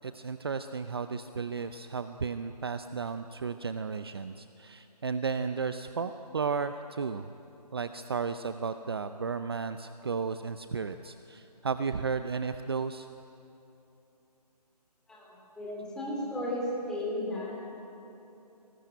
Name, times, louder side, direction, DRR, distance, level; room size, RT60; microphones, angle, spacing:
voice 1, 0.0-7.3 7.7-13.1, right 5 dB, 35° right, 10 dB, 0.7 m, -34 dB
voice 2, 15.6-17.5, left 1 dB, 5° left, -5 dB, 3.2 m, -34 dB
26.0 x 20.0 x 9.1 m, 3.0 s
figure-of-eight pair, 165°, 21 cm